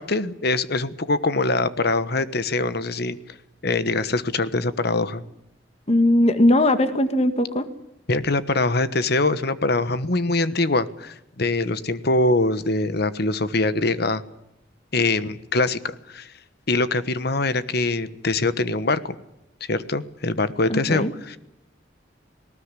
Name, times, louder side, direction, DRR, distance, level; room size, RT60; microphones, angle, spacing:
voice 1, 0.0-3.4 3.6-5.2 8.1-14.2 14.9-16.3 16.7-19.1 19.7-21.4, left 2 dB, 60° left, 14 dB, 1.3 m, -23 dB
voice 2, 5.9-7.7 20.7-21.1, left 1 dB, 35° left, 10 dB, 1.8 m, -19 dB
19.5 x 19.0 x 9.8 m, 0.86 s
head